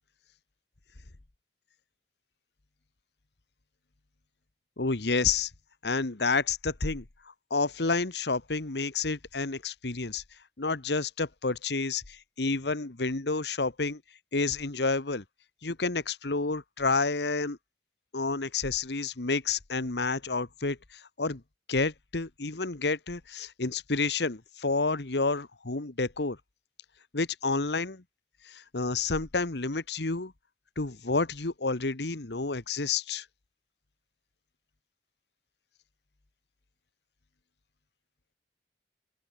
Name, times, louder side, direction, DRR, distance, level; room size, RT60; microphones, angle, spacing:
voice 1, 4.8-5.5 5.8-7.0 7.5-10.2 10.6-14.0 14.3-15.2 15.6-17.6 18.1-21.4 21.7-26.4 27.1-28.0 28.4-30.3 30.8-33.2, left 3 dB, 75° left, 1.3 m, -29 dB
open air
head